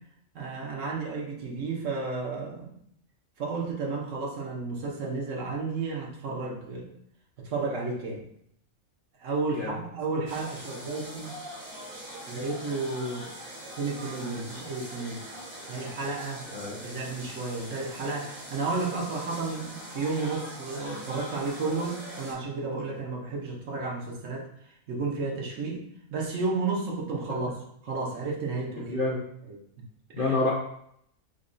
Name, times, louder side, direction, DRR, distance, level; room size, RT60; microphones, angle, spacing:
voice 1, 0.3-2.7 3.4-6.9 7.4-8.3 9.2-11.4 12.3-13.3 13.8-15.2 15.7-16.5 16.8-25.8 26.1-27.5 27.8-29.0 29.5-29.6 30.2-30.3, right 3 dB, 65° right, -1 dB, 1.2 m, -32 dB
sound 1, 10.3-22.3, equal, 85° right, 2.0 m, -42 dB
voice 2, 28.9-29.2 30.1-30.5, left 2 dB, 55° left, -3 dB, 0.6 m, -27 dB
5.1 x 2.3 x 2.6 m, 0.69 s
omnidirectional pair, 1.4 m